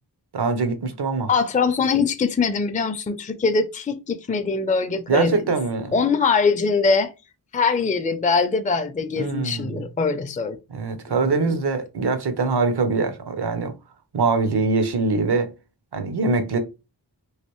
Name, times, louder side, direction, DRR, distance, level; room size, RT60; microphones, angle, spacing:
voice 1, 0.3-1.3 5.1-5.9 9.2-9.8 10.7-13.7 14.1-15.5 15.9-16.6, right 4 dB, 70° right, 0.7 m, -23 dB
voice 2, 1.3-5.4 5.9-7.1 7.5-10.6 11.3-11.6, left 4 dB, 20° left, 0.4 m, -22 dB
3.2 x 2.5 x 3.0 m
wide cardioid pair, 45°, 41 cm